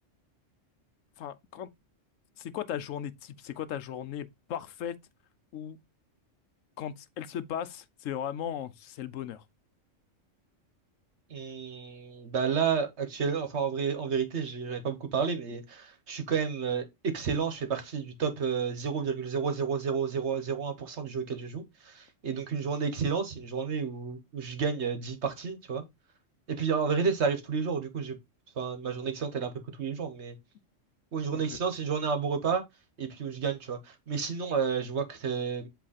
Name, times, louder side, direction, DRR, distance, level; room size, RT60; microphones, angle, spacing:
voice 1, 1.2-1.7 2.4-5.0 5.5-5.8 6.8-9.4 31.3-31.6, left 9 dB, 85° left, 1.0 m, -37 dB
voice 2, 11.3-25.8 26.5-28.2 28.6-29.5 29.8-30.3 31.1-32.6 33.0-35.7, right 6 dB, 60° right, 1.4 m, -31 dB
7.6 x 3.2 x 4.1 m
omnidirectional pair, 1.3 m